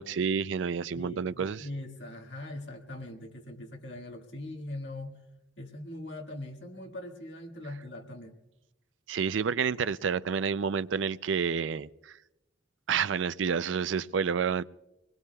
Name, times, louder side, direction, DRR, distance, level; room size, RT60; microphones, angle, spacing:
voice 1, 0.0-1.7 9.1-12.2 12.9-14.6, right 6 dB, 75° right, 0.4 m, -29 dB
voice 2, 0.9-5.2 5.6-8.3, left 1 dB, 65° left, 1.9 m, -41 dB
24.5 x 20.5 x 2.3 m
head